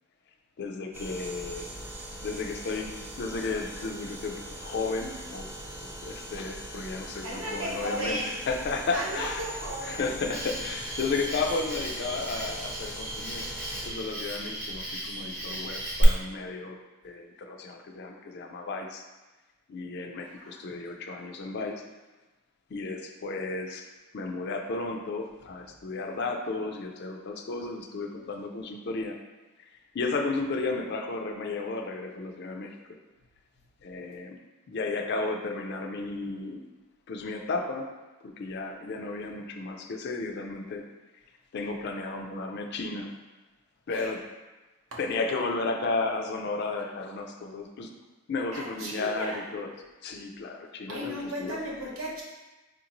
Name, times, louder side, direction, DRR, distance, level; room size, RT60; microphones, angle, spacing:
voice 1, 0.6-1.7 2.2-5.4 6.0-9.4 9.8-13.5 13.8-16.8 17.0-19.0 19.7-21.8 22.7-23.9 24.1-29.2 29.9-32.7 33.8-34.4 34.7-36.6 37.1-37.9 38.2-40.8 41.5-43.1 43.9-44.2 45.0-47.9 48.3-49.7 50.0-51.6, left 3 dB, 50° left, 3 dB, 0.4 m, -33 dB
sound 1, 0.9-13.9, equal, 10° right, 0.5 m, -41 dB
voice 2, 7.2-8.4 8.9-10.1 20.3-20.6 43.9-44.1 44.9-45.0 48.5-49.4 50.9-52.2, equal, 75° right, -3 dB, 0.9 m, -35 dB
Cricket, 10.3-16.0, right 1 dB, 40° right, 0.9 m, -36 dB
4.7 x 2.5 x 2.9 m, 1.1 s
head